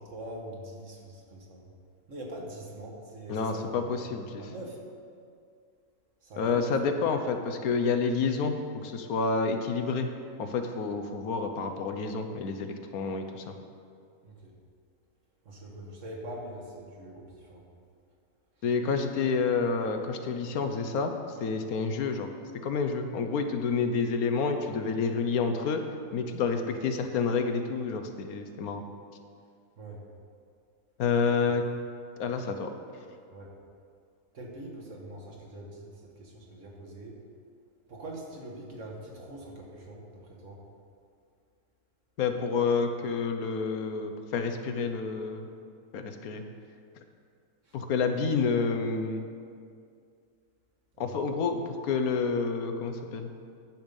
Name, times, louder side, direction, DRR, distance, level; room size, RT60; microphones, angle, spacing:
voice 1, 0.0-1.7 2.1-3.8 4.4-4.8 6.2-6.8 14.2-14.5 15.5-17.6 18.6-18.7 29.8-30.0 31.3-31.4 33.3-33.5 34.3-37.2 37.9-40.6 47.7-47.8 50.9-51.3, right 1 dB, 55° right, -1 dB, 1.7 m, -43 dB
voice 2, 3.3-4.4 6.4-10.1 10.4-13.4 18.6-21.1 21.4-22.3 22.6-25.8 26.1-28.8 31.0-31.6 32.2-32.7 42.2-45.5 45.9-46.4 47.7-49.2 51.0-53.3, left 5 dB, 75° left, 6 dB, 1.2 m, -29 dB
10.5 x 7.0 x 5.3 m, 2.3 s
omnidirectional pair, 1.6 m